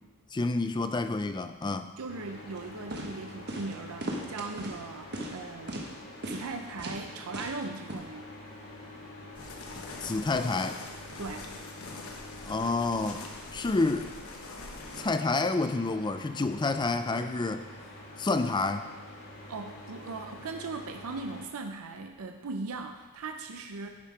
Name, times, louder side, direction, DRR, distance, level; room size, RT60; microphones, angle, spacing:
voice 1, 0.3-1.9 9.7-10.8 12.5-13.2 13.5-14.1 15.0-17.6 18.2-18.9, left 3 dB, 20° left, 9 dB, 0.4 m, -29 dB
voice 2, 2.0-5.9 6.3-8.3 11.2-11.5 19.5-23.9, right 3 dB, 70° right, 5 dB, 0.6 m, -39 dB
sound 1, 2.1-21.4, left 1 dB, 45° left, 2.0 m, -47 dB
sound 2, 2.6-2.7 2.9-3.1 3.5-3.7 4.0-4.8 5.1-5.4 5.7-5.9 6.2-6.5 6.8-7.0 7.3-7.6 7.9-8.0, right 1 dB, 50° right, 1.2 m, -36 dB
sound 3, 9.3-15.1, left 3 dB, 70° left, 1.1 m, -44 dB
11.5 x 5.6 x 4.7 m, 1.3 s
head